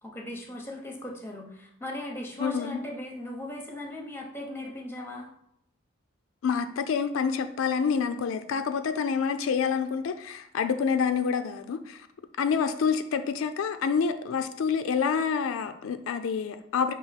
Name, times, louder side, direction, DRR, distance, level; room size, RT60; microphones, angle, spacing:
voice 1, 0.0-5.3, left 1 dB, 10° left, 0.7 m, -38 dB
voice 2, 2.4-2.8 6.4-12.1 12.4-16.9, left 6 dB, 85° left, 0.3 m, -27 dB
5.4 x 2.5 x 4.0 m
head